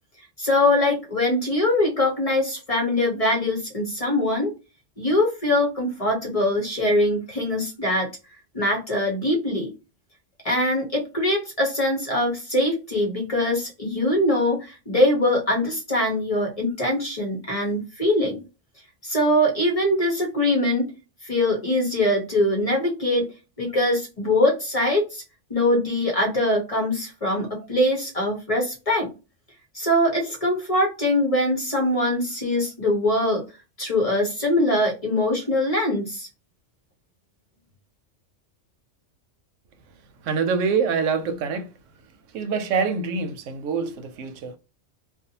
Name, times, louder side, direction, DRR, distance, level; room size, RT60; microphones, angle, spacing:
voice 1, 0.4-4.5 5.0-8.1 8.5-9.7 10.4-18.4 19.0-20.9 21.2-23.3 23.6-25.2 25.5-29.1 29.7-33.4 33.8-36.3, left 1 dB, 35° left, 0.7 m, -22 dB
voice 2, 40.2-41.7 42.3-44.6, right 5 dB, 85° right, 0.9 m, -25 dB
2.5 x 2.1 x 2.7 m
omnidirectional pair, 1.3 m